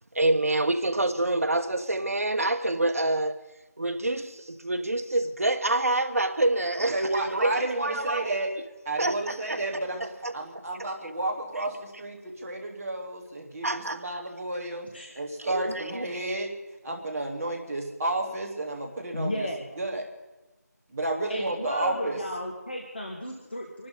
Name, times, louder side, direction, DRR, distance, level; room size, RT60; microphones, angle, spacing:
voice 1, 0.1-3.4 3.8-8.3 9.0-9.6 10.0-10.3 11.6-11.7 13.6-14.0 15.4-16.0, right 2 dB, 55° right, 7 dB, 1.3 m, -27 dB
voice 2, 6.9-8.5 8.8-14.9 15.1-16.5 16.8-19.5 19.8-20.1 20.9-22.2, right 2 dB, 5° right, -8 dB, 0.9 m, -31 dB
voice 3, 19.1-19.6 21.3-23.9, left 1 dB, 35° left, 0 dB, 1.6 m, -34 dB
26.0 x 12.5 x 4.1 m, 1.1 s
figure-of-eight pair, 175°, 9 cm